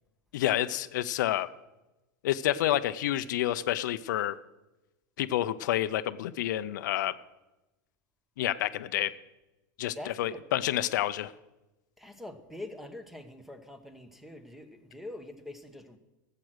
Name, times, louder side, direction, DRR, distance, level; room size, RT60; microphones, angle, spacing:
voice 1, 0.3-1.5 2.2-4.4 5.2-7.2 8.4-9.1 9.8-11.3, left 13 dB, 75° left, 13 dB, 0.5 m, -29 dB
voice 2, 9.9-10.4 12.0-16.0, left 1 dB, ahead, 9 dB, 1.1 m, -44 dB
13.5 x 7.6 x 6.2 m, 1.0 s
supercardioid pair, 120°, 10 cm